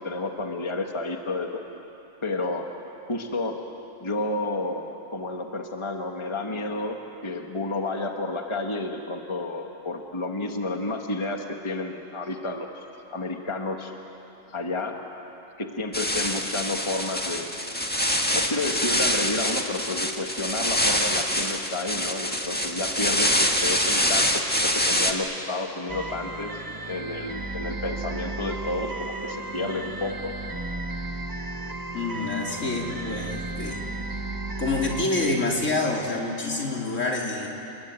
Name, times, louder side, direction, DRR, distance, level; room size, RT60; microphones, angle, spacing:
voice 1, 0.0-1.6 2.2-2.7 3.1-3.6 4.0-13.9 14.5-15.0 15.6-17.6 18.3-26.5 26.9-30.3, left 2 dB, 20° left, 3 dB, 1.5 m, -31 dB
sound 1, 15.9-25.1, equal, 5° left, 1.6 m, -25 dB
sound 2, 25.9-35.0, right 2 dB, 20° right, 0.9 m, -34 dB
voice 2, 31.9-33.8 34.6-37.5, left 2 dB, 70° left, -1 dB, 3.7 m, -27 dB
29.5 x 21.5 x 9.0 m, 3.0 s
omnidirectional pair, 1.4 m